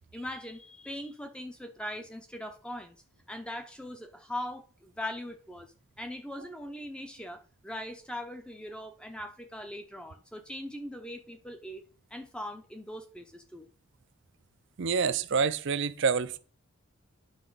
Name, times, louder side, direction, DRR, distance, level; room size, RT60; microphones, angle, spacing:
voice 1, 0.1-3.0 3.3-5.7 6.0-11.8 12.1-13.7, left 1 dB, 5° left, 0.6 m, -40 dB
voice 2, 14.8-16.4, right 5 dB, 55° right, 0.5 m, -27 dB
9.6 x 5.5 x 4.0 m
head